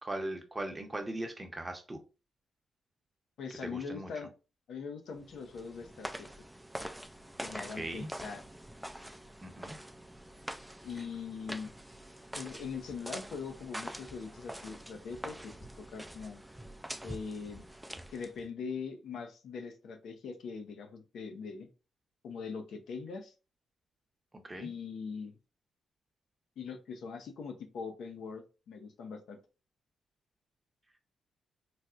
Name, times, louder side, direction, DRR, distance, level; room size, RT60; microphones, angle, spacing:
voice 1, 0.0-2.0 3.6-4.1 7.6-8.1 9.4-9.8 24.3-24.7, right 1 dB, 20° right, 5 dB, 0.7 m, -39 dB
voice 2, 3.4-4.3 4.7-6.5 7.4-8.4 10.8-11.7 12.3-16.4 17.0-17.7 18.1-21.7 22.2-23.3 24.6-25.3 26.6-29.4, left 5 dB, 80° left, 5 dB, 0.5 m, -42 dB
sound 1, 5.2-18.5, right 1 dB, 5° right, 0.3 m, -45 dB
4.0 x 2.2 x 2.4 m, 0.32 s
cardioid pair, 75°, 0 cm